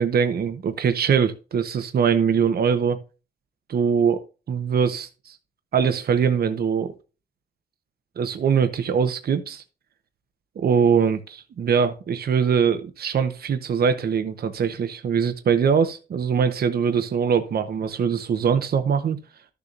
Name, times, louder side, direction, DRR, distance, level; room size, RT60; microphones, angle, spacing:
voice 1, 0.0-3.0 3.7-4.2 4.5-5.4 5.7-6.9 8.2-9.6 10.6-19.2, right 7 dB, 65° right, 0.9 m, -22 dB
13.0 x 6.9 x 2.5 m
wide cardioid pair, 125°, 17 cm